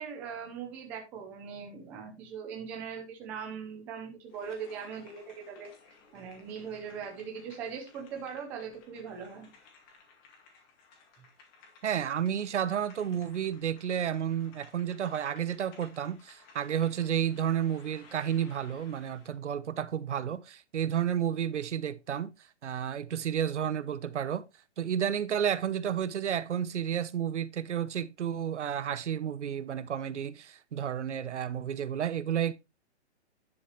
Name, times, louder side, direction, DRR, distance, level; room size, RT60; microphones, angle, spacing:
voice 1, 0.0-9.5, right 6 dB, 5° right, 0.6 m, -40 dB
sound 1, 4.3-19.4, left 4 dB, 20° left, 2.1 m, -58 dB
voice 2, 11.8-22.3 22.6-24.5 24.8-32.5, right 9 dB, 90° right, 1.1 m, -31 dB
10.5 x 6.9 x 3.2 m
hypercardioid pair, 175°, 34 cm